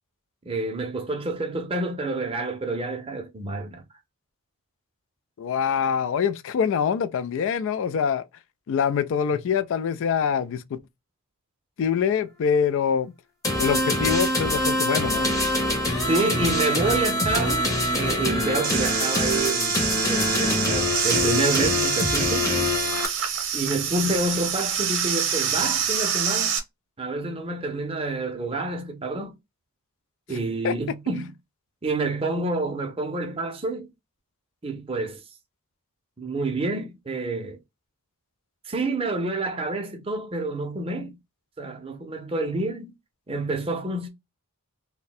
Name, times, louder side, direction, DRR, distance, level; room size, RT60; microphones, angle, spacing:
voice 1, 0.4-3.8 16.1-19.8 20.0-22.5 23.5-26.6 27.0-29.3 30.3-31.3 31.8-33.9 34.6-35.2 36.2-37.6 38.6-41.2 41.6-42.9 43.3-44.1, right 2 dB, 25° right, 0.6 m, -28 dB
voice 2, 5.4-8.2 8.7-10.8 11.8-13.1 13.6-15.3 30.3-30.4 30.6-30.7, left 7 dB, 60° left, 0.3 m, -24 dB
sound 1, 13.4-23.1, left 1 dB, 15° left, 0.7 m, -24 dB
sound 2, 18.6-26.6, right 8 dB, 60° right, 0.7 m, -26 dB
2.7 x 2.1 x 4.0 m
head